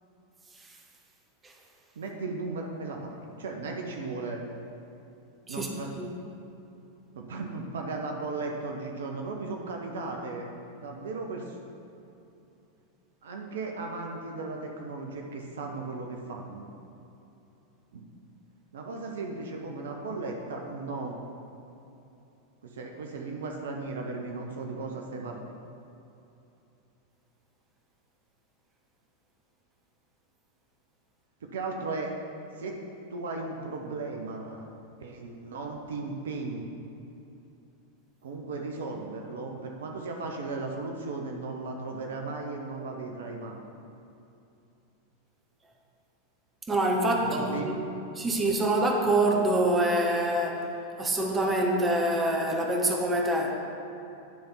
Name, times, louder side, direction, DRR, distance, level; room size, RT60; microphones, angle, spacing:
voice 1, 2.0-4.4 5.5-5.9 7.1-10.5 10.8-11.6 13.2-16.7 17.9-18.0 18.7-21.2 22.6-25.4 31.4-32.1 32.6-32.8 33.1-34.7 35.0-36.7 38.2-43.6 47.1-47.7, right 3 dB, 60° right, 1 dB, 0.7 m, -36 dB
voice 2, 46.7-47.8 48.2-50.7 51.0-53.5, right 1 dB, 15° right, 0 dB, 1.0 m, -25 dB
10.5 x 3.4 x 5.6 m, 2.8 s
figure-of-eight pair, 90°, 0 cm